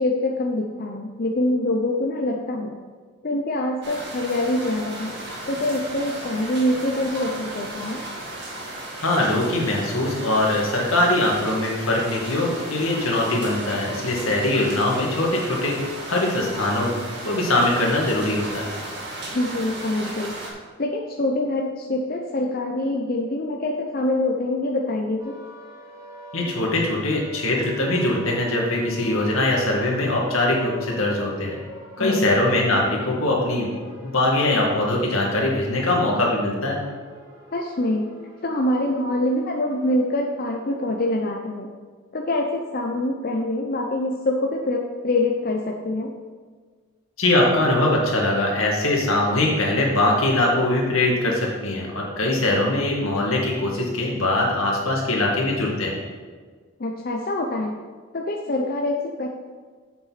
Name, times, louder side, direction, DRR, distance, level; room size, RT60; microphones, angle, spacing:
voice 1, 0.0-2.8 3.2-5.2 5.5-8.0 19.3-20.3 20.8-25.3 32.0-32.3 37.5-38.1 38.4-41.7 42.1-46.1 56.8-57.8 58.1-59.3, left 1 dB, 45° left, 1 dB, 0.6 m, -25 dB
sound 1, 3.8-20.5, right 1 dB, 55° right, 1.7 m, -35 dB
voice 2, 9.0-15.8 16.1-16.9 17.2-18.7 26.3-31.6 32.0-33.7 34.0-36.8 47.2-55.9, left 1 dB, 80° left, -2 dB, 2.0 m, -22 dB
sound 2, 25.2-41.2, equal, 15° right, 2.1 m, -43 dB
8.0 x 7.0 x 4.1 m, 1.5 s
head